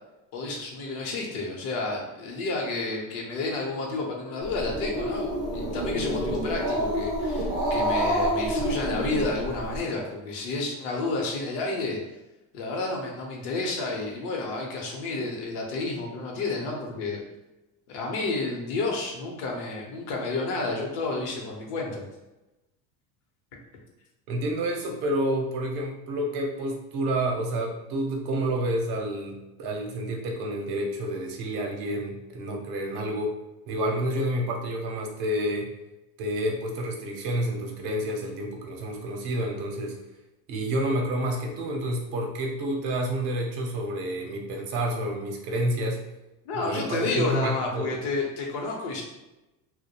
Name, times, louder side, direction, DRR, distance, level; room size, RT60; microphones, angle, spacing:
voice 1, 0.3-12.0 12.5-17.2 17.9-22.0 46.5-49.0, left 3 dB, 65° left, 0 dB, 0.7 m, -30 dB
Growling, 4.4-9.8, equal, 10° right, 0.4 m, -28 dB
voice 2, 24.3-33.4 33.7-35.7 36.2-40.0 40.5-46.0 46.5-48.0, right 1 dB, 60° right, 1 dB, 0.6 m, -29 dB
2.2 x 2.0 x 2.8 m, 1.0 s
cardioid pair, 135°, 43 cm